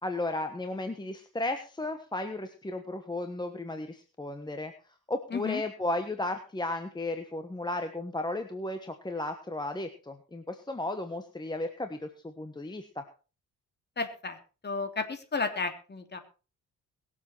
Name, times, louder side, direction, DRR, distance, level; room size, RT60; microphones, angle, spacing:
voice 1, 0.0-4.7 5.1-13.0, left 2 dB, 15° left, 7 dB, 1.3 m, -34 dB
voice 2, 5.3-5.6 14.0-14.4 14.6-16.2, left 4 dB, 35° left, 6 dB, 3.0 m, -32 dB
22.0 x 7.6 x 4.6 m, 0.36 s
cardioid pair, 100°, 30 cm